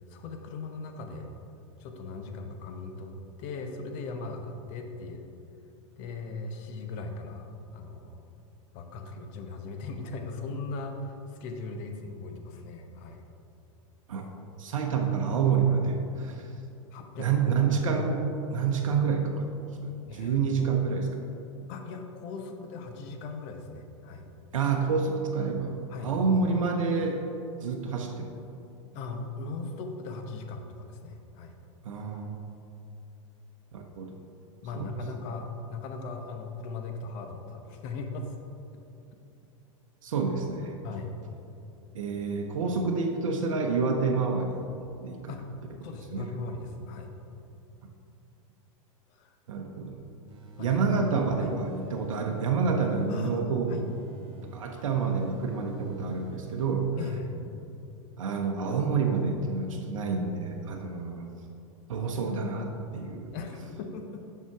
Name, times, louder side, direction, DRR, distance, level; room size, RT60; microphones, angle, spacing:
voice 1, 0.1-1.3 1.8-3.1 3.4-5.2 6.0-8.2 8.7-13.2 16.9-17.6 20.1-20.8 21.7-24.2 25.9-26.4 28.9-31.5 34.6-38.3 40.8-41.1 45.3-45.5 45.8-47.1 49.1-49.3 50.6-50.9 51.4-51.5 53.1-53.8 57.0-57.3 63.3-64.2, left 3 dB, 50° left, 4 dB, 1.0 m, -39 dB
voice 2, 14.6-16.5 17.2-18.2 18.5-19.5 20.0-21.1 24.5-25.8 26.0-27.2 27.6-28.4 31.8-32.6 33.7-34.1 34.8-34.9 40.0-40.8 41.9-44.7 45.0-45.3 46.1-46.3 47.8-47.9 49.5-50.0 50.6-53.8 54.4-57.0 58.2-61.3 61.9-63.4, right 5 dB, 75° right, 2 dB, 0.8 m, -28 dB
sound 1, 50.3-53.3 53.7-56.7 57.1-57.2, right 4 dB, 35° right, 1.2 m, -50 dB
7.4 x 5.7 x 4.7 m, 2.7 s
hypercardioid pair, 100°, 17 cm